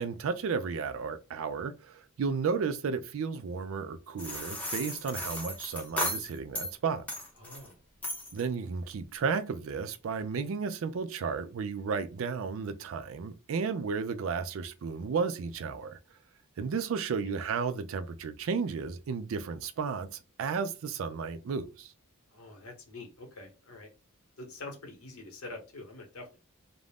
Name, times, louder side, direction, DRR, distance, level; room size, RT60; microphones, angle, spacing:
voice 1, 0.0-7.1 8.3-16.0 16.6-21.9, right 5 dB, 65° right, 0.4 m, -33 dB
sound 1, 4.2-6.7 7.1-7.7 8.0-8.4, left 1 dB, 5° left, 0.6 m, -35 dB
voice 2, 7.4-7.8 17.2-17.3 22.3-23.9 24.4-26.4, left 2 dB, 85° left, 0.9 m, -45 dB
2.5 x 2.0 x 3.3 m
head